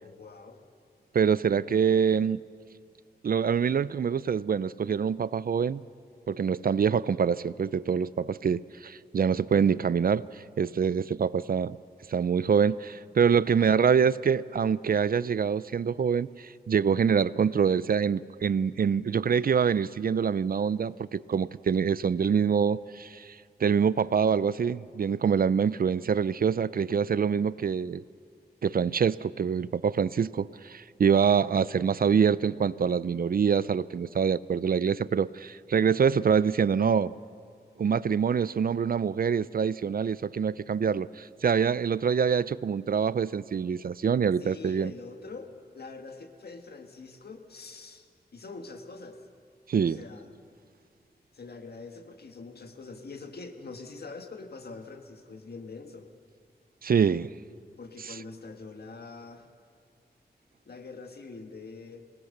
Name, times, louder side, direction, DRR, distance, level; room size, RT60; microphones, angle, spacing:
voice 1, 0.0-0.6 13.4-13.8 44.4-49.3 49.8-50.3 51.3-56.1 57.8-59.5 60.7-62.2, left 4 dB, 70° left, 1.7 m, -44 dB
voice 2, 1.1-2.4 3.2-5.8 6.3-10.2 10.6-11.8 12.1-23.4 23.6-28.0 28.6-37.1 37.8-44.9 49.7-50.0 56.8-57.3 58.1-58.2, right 6 dB, 60° right, 0.4 m, -25 dB
25.5 x 18.5 x 6.6 m
wide cardioid pair, 105°, 17 cm